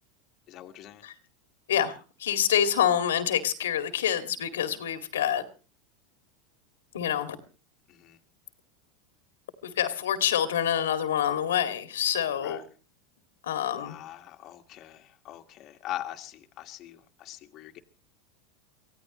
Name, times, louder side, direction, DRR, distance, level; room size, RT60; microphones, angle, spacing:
voice 1, 0.5-1.0 7.9-8.2 12.3-12.7 13.7-17.8, left 13 dB, 45° left, 4 dB, 1.7 m, -42 dB
voice 2, 1.7-5.4 6.9-7.4 9.6-12.6 13.4-13.9, left 9 dB, 90° left, 9 dB, 2.1 m, -27 dB
24.0 x 16.0 x 3.1 m, 0.35 s
hypercardioid pair, 105°, 0 cm